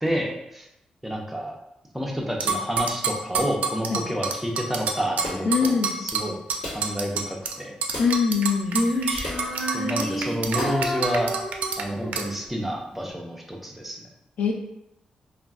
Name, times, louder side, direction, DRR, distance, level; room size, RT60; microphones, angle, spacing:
voice 1, 0.0-0.7 1.0-1.5 1.9-6.4 6.7-7.7 9.7-11.3 11.8-14.0, equal, 5° right, 0 dB, 0.5 m, -29 dB
sound 1, 2.4-7.6 7.8-11.8 12.1-12.3, right 5 dB, 85° right, 0.3 m, -28 dB
sound 2, 5.2-5.6 6.6-7.0 7.9-8.2 9.2-9.5 10.6-10.9, left 1 dB, 60° left, 1.3 m, -34 dB
voice 2, 5.4-5.9 8.0-8.8 14.4-14.5, left 5 dB, 75° left, 2 dB, 0.4 m, -22 dB
Female singing, 8.7-12.2, equal, 25° left, 0.8 m, -29 dB
2.3 x 2.2 x 3.5 m, 0.82 s
wide cardioid pair, 135°, 2 cm